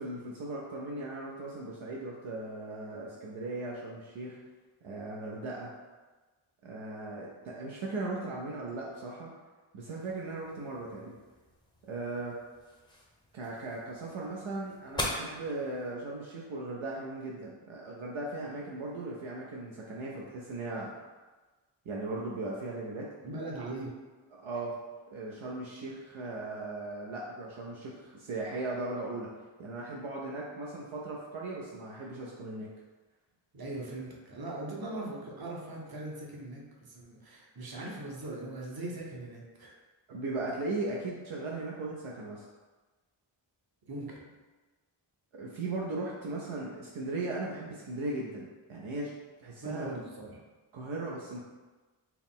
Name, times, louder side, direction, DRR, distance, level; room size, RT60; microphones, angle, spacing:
voice 1, 0.0-4.4 4.8-5.7 6.6-9.3 9.7-11.1 11.8-12.4 13.3-20.9 21.9-23.1 24.4-24.8 25.1-32.7 40.1-42.4 45.3-49.1 49.4-49.9 50.7-51.4, right 2 dB, 70° right, -3 dB, 0.7 m, -38 dB
sound 1, 10.0-15.9, left 1 dB, 10° left, 0.7 m, -42 dB
voice 2, 23.2-23.9 33.5-39.7 43.8-44.3 49.6-50.4, right 2 dB, 45° right, -2 dB, 0.9 m, -40 dB
4.6 x 2.0 x 3.6 m, 1.3 s
wide cardioid pair, 65°, 50 cm